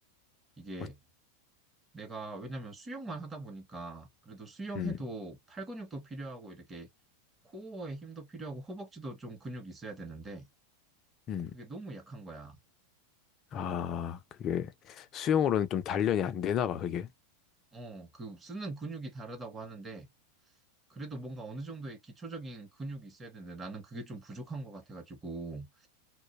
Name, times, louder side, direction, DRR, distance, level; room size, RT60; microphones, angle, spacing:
voice 1, 0.6-1.0 1.9-6.9 7.4-10.5 11.5-12.6 17.7-20.1 20.9-25.9, right 2 dB, 15° right, 0.7 m, -42 dB
voice 2, 13.5-17.1, left 9 dB, 40° left, 0.4 m, -31 dB
2.1 x 2.0 x 2.9 m
hypercardioid pair, 105°, 0 cm